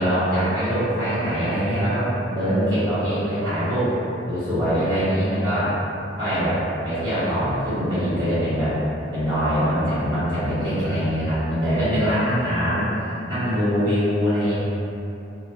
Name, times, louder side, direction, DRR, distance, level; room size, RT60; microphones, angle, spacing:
voice 1, 0.0-3.9 4.3-5.7 6.2-8.8 9.1-14.6, equal, 25° right, -18 dB, 1.2 m, -23 dB
3.8 x 2.2 x 2.3 m, 2.9 s
head